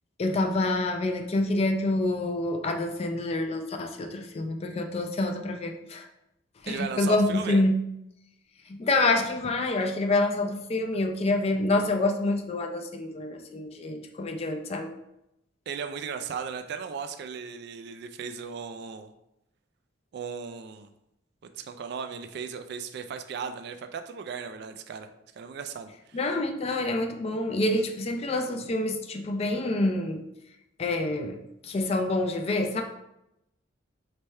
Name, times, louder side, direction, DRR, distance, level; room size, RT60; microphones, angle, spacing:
voice 1, 0.2-6.1 6.6-7.8 8.7-14.9 26.1-30.2 30.8-31.4 31.6-32.8, left 2 dB, 30° left, 5 dB, 0.4 m, -27 dB
voice 2, 6.7-7.6 15.7-19.1 20.1-20.9 21.6-25.1 25.4-26.4, right 6 dB, 60° right, 8 dB, 0.3 m, -36 dB
3.4 x 3.2 x 4.3 m, 0.85 s
head